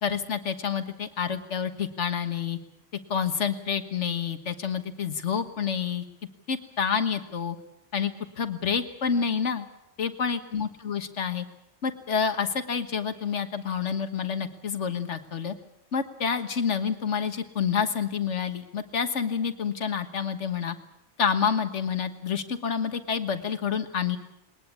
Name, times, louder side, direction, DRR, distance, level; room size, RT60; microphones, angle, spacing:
voice 1, 0.0-2.6 3.1-6.0 6.5-7.6 7.9-8.1 8.4-9.7 10.0-11.5 11.8-15.5 15.9-20.8 21.2-24.2, left 6 dB, 85° left, 9 dB, 1.7 m, -28 dB
21.0 x 20.0 x 8.5 m, 0.82 s
omnidirectional pair, 1.2 m